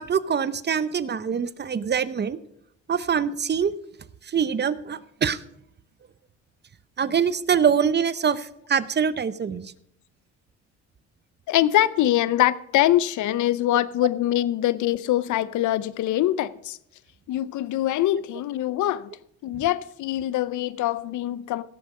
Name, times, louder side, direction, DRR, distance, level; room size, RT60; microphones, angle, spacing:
voice 1, 0.0-2.4 2.9-3.7 4.2-5.4 7.0-9.7, right 7 dB, 35° right, 0.7 m, -24 dB
voice 2, 11.5-16.8 17.3-19.1 19.4-21.6, left 13 dB, 75° left, 0.6 m, -23 dB
16.5 x 7.2 x 5.4 m
cardioid pair, 90°, 30 cm